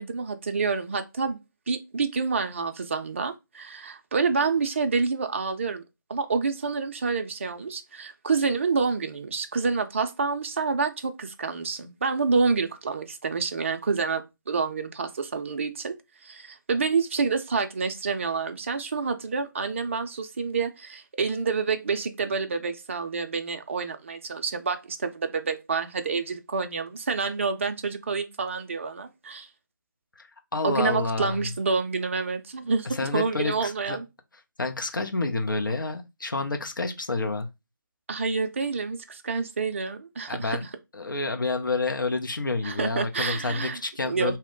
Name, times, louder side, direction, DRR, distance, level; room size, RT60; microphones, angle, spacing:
voice 1, 0.0-1.4 1.7-5.8 6.1-15.9 16.2-29.5 30.6-32.9 33.1-34.0 38.1-40.7 42.6-44.4, right 4 dB, 35° right, 0.4 m, -28 dB
voice 2, 30.2-31.4 32.9-34.0 34.6-37.5 40.3-40.6 40.9-44.4, left 3 dB, 70° left, 0.7 m, -29 dB
2.9 x 2.1 x 3.8 m
figure-of-eight pair, 155°, 11 cm